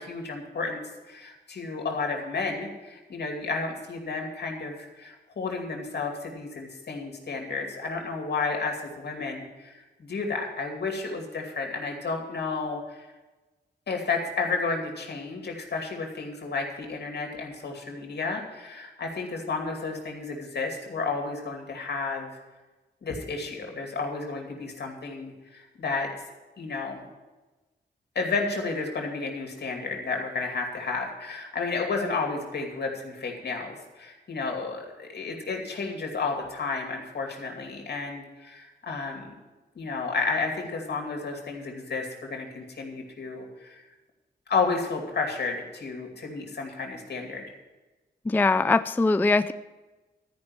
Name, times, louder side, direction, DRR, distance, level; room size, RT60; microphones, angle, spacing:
voice 1, 0.0-13.1 13.9-22.3 23.0-26.1 26.6-27.1 28.1-39.3 39.7-43.8 44.5-47.5, left 4 dB, 70° left, 2 dB, 2.6 m, -32 dB
voice 2, 48.3-49.5, left 3 dB, 10° left, 12 dB, 0.3 m, -22 dB
13.0 x 5.3 x 8.8 m, 1.2 s
cardioid pair, 75°, 18 cm